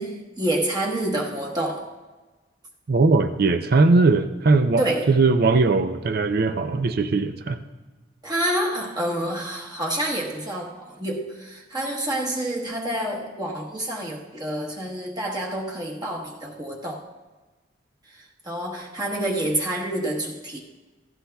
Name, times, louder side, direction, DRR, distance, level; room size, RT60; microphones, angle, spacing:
voice 1, 0.0-1.9 4.8-5.1 8.2-17.0 18.1-20.6, right 1 dB, 20° right, -2 dB, 1.1 m, -28 dB
voice 2, 2.9-7.6, right 3 dB, 50° right, 9 dB, 0.5 m, -19 dB
15.5 x 15.5 x 2.3 m, 1.2 s
head